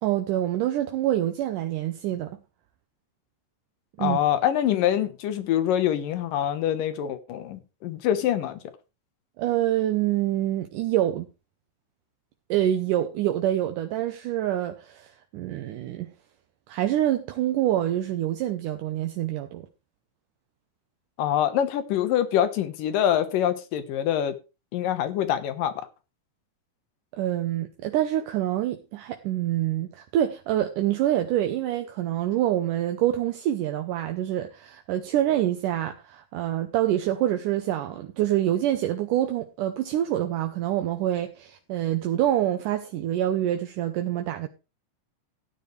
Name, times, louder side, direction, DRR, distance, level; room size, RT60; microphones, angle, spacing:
voice 1, 0.0-2.4 4.0-4.2 9.4-11.3 12.5-16.1 16.7-19.7 27.1-44.5, right 12 dB, 80° right, 2.4 m, -26 dB
voice 2, 4.0-8.6 21.2-24.3 24.7-25.7, left 10 dB, 90° left, 2.8 m, -25 dB
15.0 x 9.5 x 3.3 m
omnidirectional pair, 3.8 m